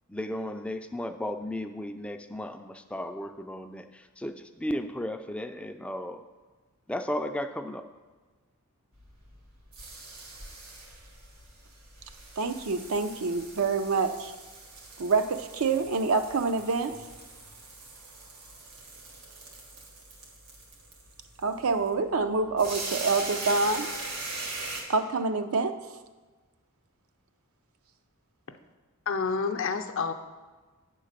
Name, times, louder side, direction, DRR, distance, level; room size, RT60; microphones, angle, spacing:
voice 1, 0.1-6.2 6.9-7.9, left 1 dB, 5° left, 7 dB, 0.3 m, -35 dB
sound 1, 8.9-24.8, right 2 dB, 85° right, 1.8 m, -41 dB
voice 2, 12.4-14.3 15.0-17.0 21.4-23.9 24.9-25.8, right 4 dB, 70° right, 9 dB, 0.5 m, -26 dB
voice 3, 29.1-30.1, left 5 dB, 60° left, 6 dB, 0.6 m, -28 dB
8.9 x 3.8 x 6.6 m, 1.3 s
head